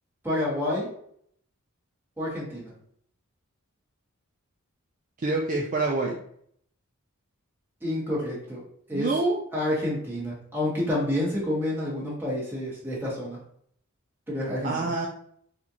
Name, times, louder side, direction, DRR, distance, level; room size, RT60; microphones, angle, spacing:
voice 1, 0.2-0.9 2.2-2.7 7.8-8.6 8.9-9.1 9.5-13.4 14.3-14.9, left 1 dB, 10° right, -5 dB, 1.3 m, -29 dB
voice 2, 5.2-6.2 8.9-9.4 14.6-15.1, right 3 dB, 35° right, -1 dB, 0.4 m, -26 dB
4.2 x 2.4 x 2.8 m, 0.66 s
head